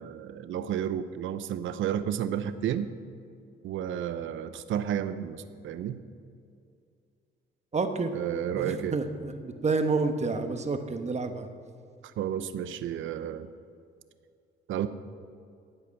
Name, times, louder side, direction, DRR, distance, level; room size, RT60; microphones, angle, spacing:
voice 1, 0.0-2.9 3.6-6.0 8.1-9.0 12.2-13.5 14.7-14.9, right 10 dB, 80° right, 12 dB, 0.7 m, -31 dB
voice 2, 7.7-8.1 8.6-11.5, right 4 dB, 35° right, 7 dB, 1.2 m, -29 dB
17.5 x 8.2 x 5.9 m, 2.4 s
cardioid pair, 90°, 20 cm